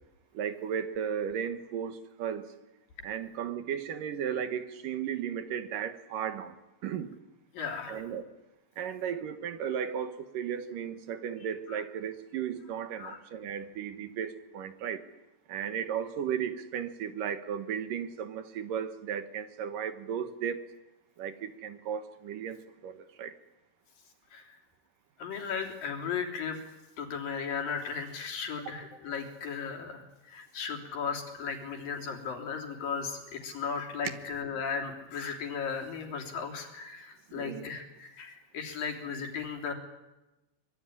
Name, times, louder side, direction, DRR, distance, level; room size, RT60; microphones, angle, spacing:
voice 1, 0.3-2.5 3.0-6.5 6.8-7.1 7.9-8.2 8.8-15.0 15.5-20.6 21.2-23.3 37.3-37.7, right 8 dB, 70° right, 10 dB, 2.9 m, -35 dB
voice 2, 7.5-8.0 11.7-11.8 13.0-13.2 24.3-24.6 25.2-26.6 27.0-39.7, left 6 dB, 75° left, 3 dB, 5.1 m, -36 dB
24.5 x 23.5 x 10.0 m, 1.0 s
omnidirectional pair, 4.1 m